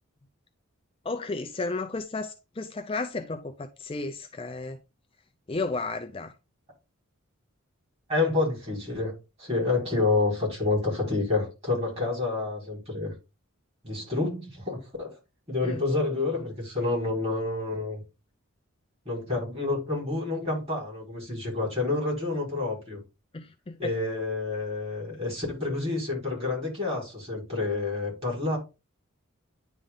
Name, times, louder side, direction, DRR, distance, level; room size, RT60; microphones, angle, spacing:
voice 1, 1.0-4.8 5.5-6.3 15.6-15.8 23.3-23.9, left 3 dB, 25° left, 0.4 m, -33 dB
voice 2, 8.1-9.1 9.4-13.1 13.8-15.1 15.5-18.0 19.0-23.0 23.8-28.6, left 3 dB, 30° right, 4.7 m, -28 dB
9.9 x 3.6 x 3.8 m
head